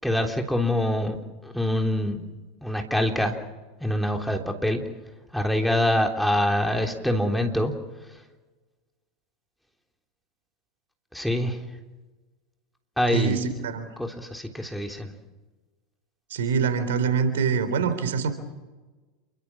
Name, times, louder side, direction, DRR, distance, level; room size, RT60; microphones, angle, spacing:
voice 1, 0.0-1.2 1.4-2.3 2.6-3.3 3.8-4.8 5.3-7.7 11.1-11.6 13.0-13.6 14.0-15.1, left 1 dB, ahead, 3 dB, 3.5 m, -25 dB
voice 2, 13.1-13.9 16.3-18.3, right 6 dB, 70° right, 11 dB, 3.7 m, -24 dB
29.0 x 23.5 x 6.2 m, 1.2 s
hypercardioid pair, 90°, 0 cm